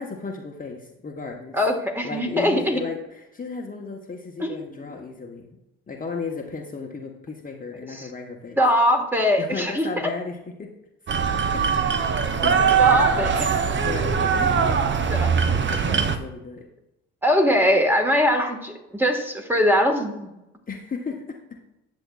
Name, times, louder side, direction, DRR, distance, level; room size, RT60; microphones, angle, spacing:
voice 1, 0.0-1.6 2.0-5.6 5.9-8.6 9.4-10.7 11.5-11.7 12.1-16.7 20.7-21.6, left 4 dB, 25° left, 0 dB, 1.0 m, -35 dB
voice 2, 1.5-2.8 4.4-4.6 7.9-8.1 8.6-9.9 12.8-13.3 15.1-15.4 17.2-20.3, equal, 5° right, 1 dB, 1.5 m, -21 dB
sound 1, 11.1-16.2, right 6 dB, 35° right, 0.7 m, -21 dB
9.9 x 7.0 x 2.3 m, 0.90 s
hypercardioid pair, 55°, 35 cm